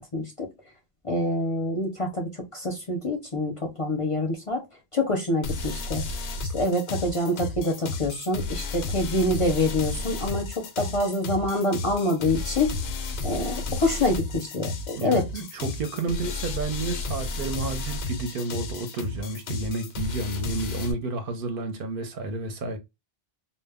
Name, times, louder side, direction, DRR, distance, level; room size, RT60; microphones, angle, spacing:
voice 1, 0.1-0.5 1.0-4.6 4.9-6.0 6.5-12.7 13.2-15.3, left 1 dB, 40° left, 0.5 m, -26 dB
sound 1, 5.4-20.9, left 3 dB, 85° left, 0.8 m, -33 dB
voice 2, 15.0-22.8, right 3 dB, 65° right, 0.7 m, -31 dB
2.2 x 2.0 x 3.3 m
omnidirectional pair, 1.0 m